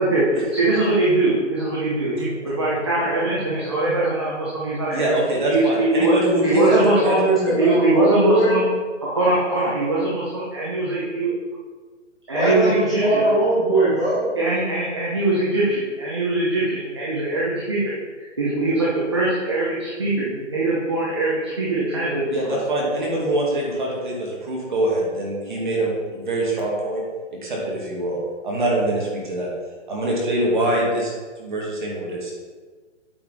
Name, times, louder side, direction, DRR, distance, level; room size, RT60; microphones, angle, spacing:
voice 1, 0.0-5.2 5.5-6.1 6.4-7.2 7.6-8.6 9.0-11.3 12.3-13.3 14.4-22.6, right 2 dB, 20° right, -6 dB, 0.7 m, -22 dB
voice 2, 4.9-7.2 22.3-27.0 27.3-28.2 28.4-29.5 29.9-31.1 31.4-32.3, right 1 dB, 40° right, -3 dB, 2.1 m, -24 dB
voice 3, 7.0-8.6 12.3-14.4, right 1 dB, ahead, -16 dB, 2.2 m, -20 dB
8.5 x 4.7 x 5.0 m, 1.4 s
hypercardioid pair, 180°, 37 cm